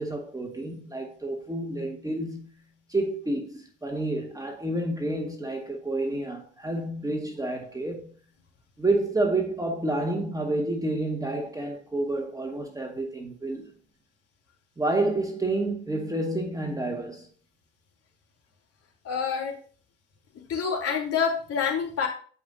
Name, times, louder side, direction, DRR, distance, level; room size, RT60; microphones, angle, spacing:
voice 1, 0.0-2.5 2.9-8.1 8.8-13.7 14.8-17.3, right 2 dB, 10° right, 1.7 m, -29 dB
voice 2, 19.0-19.6 20.5-22.1, left 6 dB, 45° left, 3.7 m, -27 dB
14.5 x 5.4 x 2.7 m
hypercardioid pair, 70°, 33 cm